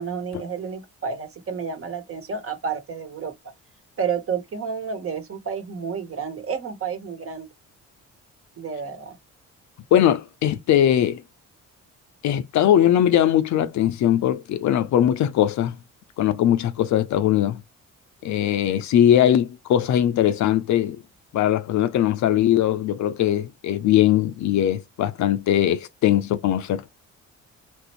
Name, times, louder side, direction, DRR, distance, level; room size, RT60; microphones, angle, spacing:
voice 1, 0.0-3.3 4.0-7.5 8.6-9.2, right 6 dB, 45° right, 1.2 m, -30 dB
voice 2, 9.9-11.2 12.2-15.8 16.2-17.6 18.2-21.0 21.3-26.8, left 11 dB, 70° left, 0.6 m, -20 dB
3.1 x 2.6 x 3.0 m
cardioid pair, 90°, 30 cm